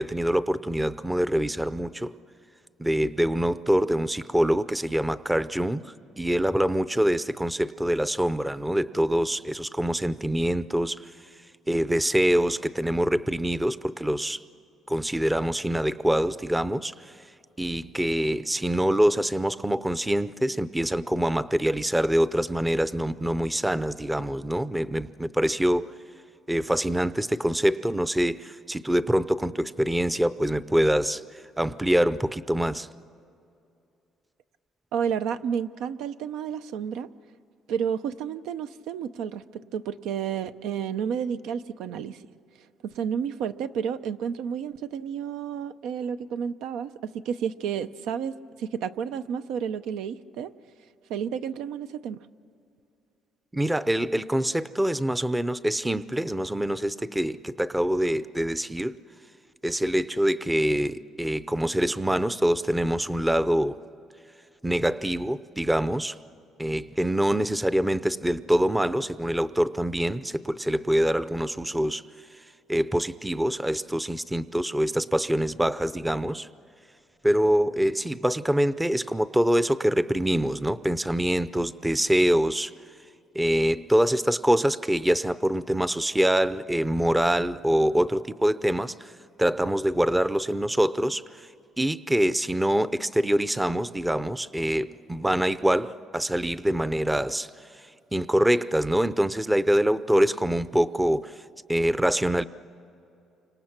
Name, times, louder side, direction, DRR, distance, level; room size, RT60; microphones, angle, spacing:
voice 1, 0.0-2.1 2.8-11.1 11.7-14.4 14.9-17.2 17.6-25.9 26.5-32.9 53.5-59.0 59.6-63.8 64.6-66.2 66.6-72.0 72.7-76.5 77.2-82.7 83.3-89.1 89.4-91.5 91.8-101.4 101.7-102.4, equal, 5° right, 15 dB, 0.5 m, -25 dB
voice 2, 34.9-37.1 37.7-42.2 42.8-50.5 51.1-52.2, right 7 dB, 90° right, 11 dB, 0.7 m, -31 dB
29.0 x 26.0 x 6.0 m, 2.6 s
cardioid pair, 135°, 0 cm